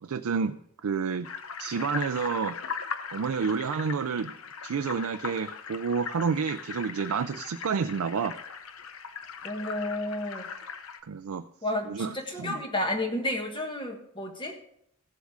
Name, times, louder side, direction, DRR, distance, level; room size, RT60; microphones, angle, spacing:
voice 1, 0.0-0.5 0.8-1.3 1.6-2.5 3.1-4.3 4.6-8.3 11.1-11.4 11.9-12.6, right 5 dB, 90° right, 9 dB, 0.4 m, -29 dB
sound 1, 1.2-11.0, left 6 dB, 75° left, 0.8 m, -39 dB
voice 2, 9.4-10.5 11.6-14.6, left 1 dB, 20° left, 4 dB, 1.4 m, -31 dB
15.5 x 7.2 x 3.6 m, 0.74 s
head